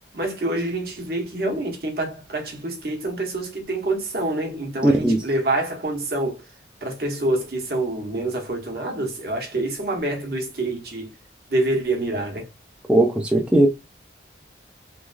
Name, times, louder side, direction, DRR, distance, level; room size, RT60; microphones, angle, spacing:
voice 1, 0.1-6.4 6.8-11.1 11.5-12.5, right 2 dB, 55° right, 0.9 m, -26 dB
voice 2, 4.8-5.2 12.9-13.7, right 1 dB, 5° right, 0.4 m, -18 dB
3.1 x 2.3 x 2.4 m
head